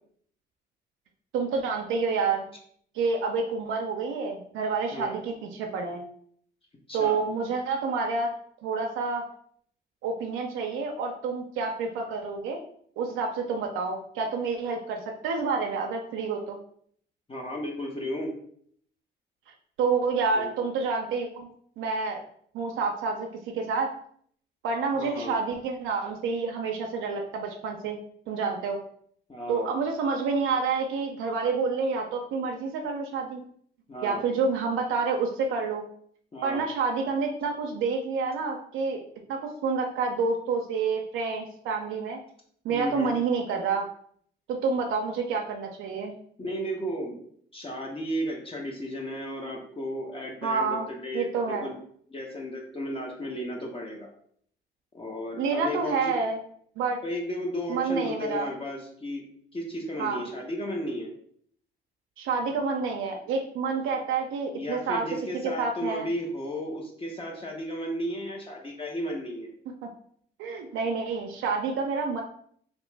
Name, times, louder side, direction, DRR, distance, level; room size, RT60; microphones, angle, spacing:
voice 1, 1.3-2.5 2.9-6.0 6.9-8.3 8.6-9.2 10.0-12.6 13.0-16.6 19.8-21.5 21.8-22.2 22.5-23.3 23.5-23.9 24.6-28.0 28.3-28.8 29.5-33.4 34.0-35.9 36.4-39.0 39.3-42.2 42.6-43.8 44.5-46.1 50.4-50.9 51.1-51.7 55.4-56.4 56.8-57.0 57.7-58.5 60.0-60.3 62.2-65.1 65.6-66.1 69.8-69.9 70.4-72.2, right 4 dB, 85° right, 2 dB, 0.5 m, -28 dB
voice 2, 6.9-7.2 17.3-18.3 20.3-20.5 24.9-25.4 29.3-29.7 33.9-34.2 36.3-36.6 42.7-43.2 46.4-47.2 47.5-51.8 52.1-54.1 54.9-56.2 57.0-59.2 59.5-61.1 64.5-69.5, equal, 30° left, 0 dB, 0.7 m, -34 dB
2.9 x 2.9 x 3.3 m, 0.62 s
cardioid pair, 90°, 20 cm